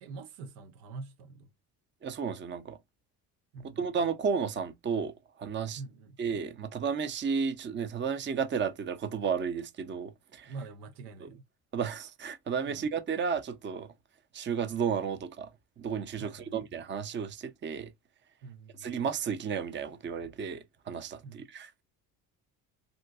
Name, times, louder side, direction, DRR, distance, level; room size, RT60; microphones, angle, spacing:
voice 1, 0.0-1.5 3.5-3.9 5.8-6.2 10.4-11.5 12.7-12.9 16.2-16.6 18.4-18.9 21.2-21.5, right 4 dB, 80° right, 0.7 m, -45 dB
voice 2, 2.0-2.8 3.6-5.1 5.4-5.8 6.2-10.5 11.2-11.3 11.7-13.9 14.3-15.5 15.8-17.9 18.8-21.7, right 6 dB, 25° right, 0.5 m, -33 dB
3.7 x 2.6 x 2.3 m
hypercardioid pair, 55°, 47 cm